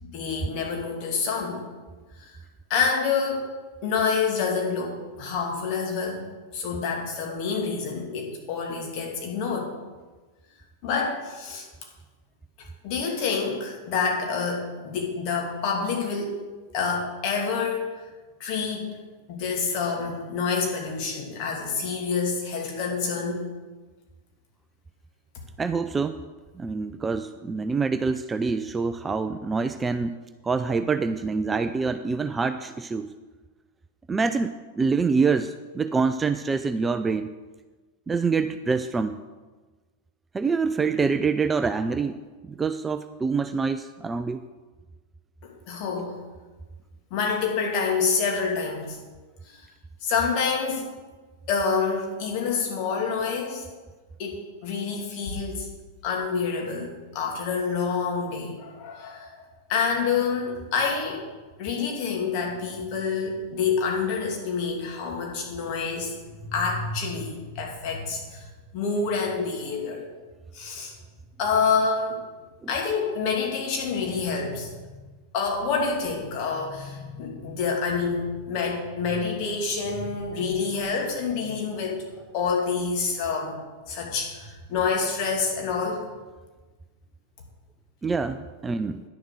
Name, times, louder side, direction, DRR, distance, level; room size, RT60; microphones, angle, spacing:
voice 1, 0.0-1.6 2.2-2.3 2.7-3.5 3.8-6.2 6.5-9.7 10.8-11.7 12.6-16.4 16.7-18.0 18.4-19.0 19.3-23.5 45.4-46.1 47.1-49.0 49.4-49.6 50.0-50.9 51.5-53.7 54.2-55.7 56.0-59.4 59.7-61.3 61.6-68.5 68.7-70.1 70.5-70.9 71.4-72.2 72.7-74.7 75.3-82.0 82.3-83.6 83.9-86.0, left 5 dB, 40° left, 0 dB, 2.6 m, -27 dB
voice 2, 25.6-26.2 26.6-30.1 30.4-33.1 34.1-37.3 38.1-39.2 40.3-44.4 72.6-72.7 88.0-89.0, right 4 dB, 15° right, 11 dB, 0.4 m, -26 dB
10.5 x 7.0 x 6.4 m, 1.3 s
figure-of-eight pair, 90°, 0 cm